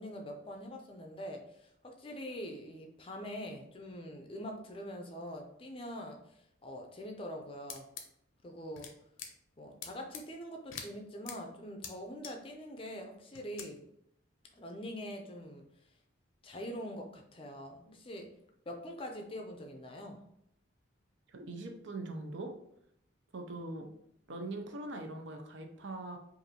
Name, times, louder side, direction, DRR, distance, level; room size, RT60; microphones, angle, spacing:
voice 1, 0.0-7.9 8.4-8.9 9.6-13.8 14.5-15.6 16.4-18.3 18.7-20.2, equal, 25° left, 3 dB, 0.5 m, -44 dB
sound 1, 7.7-8.0 8.8-8.9 9.2-9.3 9.8-10.2 10.7-10.9 11.3-11.4 11.8-11.9 12.2-12.3 13.3-13.7, left 7 dB, 80° left, 0.7 m, -43 dB
voice 2, 21.3-22.5 23.3-23.9 24.3-26.2, right 2 dB, 65° right, 4 dB, 0.6 m, -41 dB
5.1 x 2.6 x 2.9 m, 0.74 s
head